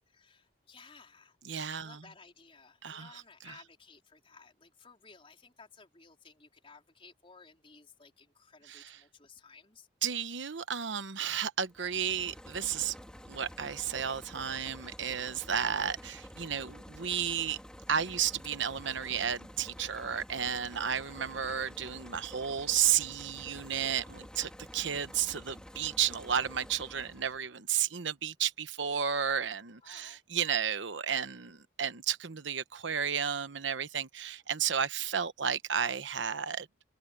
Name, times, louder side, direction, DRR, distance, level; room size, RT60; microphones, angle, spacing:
voice 1, 0.1-1.4 1.7-9.9 29.8-30.2, left 4 dB, 30° left, 4.4 m, -57 dB
voice 2, 1.4-2.1 2.8-3.6 8.6-9.0 10.0-12.9 13.3-17.6 17.9-36.7, right 8 dB, 75° right, 1.0 m, -33 dB
sound 1, 11.7-27.5, equal, 5° left, 2.7 m, -49 dB
head